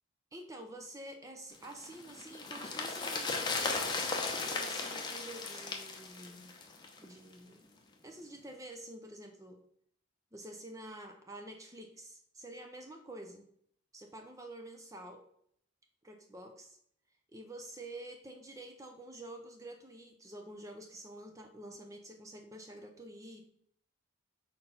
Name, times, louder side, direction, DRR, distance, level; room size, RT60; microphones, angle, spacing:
voice 1, 0.3-3.8 4.5-6.5 7.0-7.7 8.0-9.6 10.3-13.4 13.9-15.2 16.0-16.8 17.3-23.4, right 1 dB, 15° right, 4 dB, 0.5 m, -48 dB
sound 1, 1.6-7.1 7.3-7.4, left 3 dB, 20° left, 0.7 m, -36 dB
4.4 x 3.9 x 5.5 m, 0.67 s
head